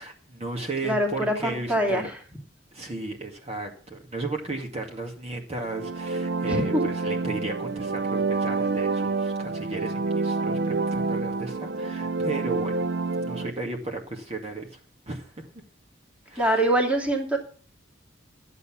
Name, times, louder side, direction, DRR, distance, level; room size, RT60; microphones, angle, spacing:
voice 1, 0.0-2.0 2.7-12.7 13.1-14.8 15.1-15.5 16.3-16.6, right 2 dB, 35° right, 1 dB, 2.2 m, -35 dB
voice 2, 0.8-2.2 6.5-6.8 16.4-17.4, right 1 dB, 5° right, 1 dB, 2.4 m, -24 dB
sound 1, 5.6-13.5, right 3 dB, 60° right, 0.5 m, -28 dB
12.5 x 8.3 x 6.1 m, 0.41 s
head